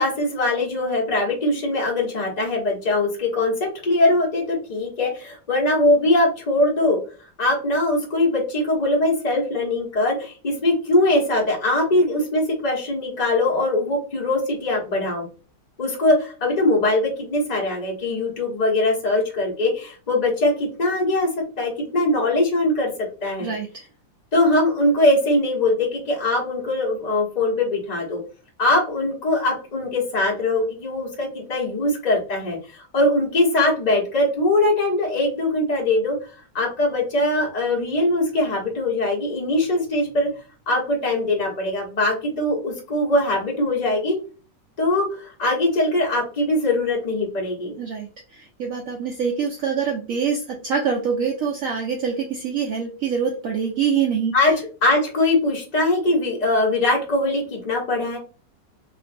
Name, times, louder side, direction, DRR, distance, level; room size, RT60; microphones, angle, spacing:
voice 1, 0.0-7.0 7.4-15.3 15.8-21.3 21.6-22.9 23.2-23.5 24.3-28.2 28.6-36.3 36.5-40.3 40.7-44.2 44.8-47.8 54.3-54.5 54.8-58.2, left 2 dB, 30° left, -2 dB, 0.9 m, -21 dB
voice 2, 23.4-23.8 47.8-54.3, right 6 dB, 80° right, 1 dB, 0.7 m, -25 dB
3.0 x 2.5 x 2.5 m, 0.37 s
omnidirectional pair, 2.0 m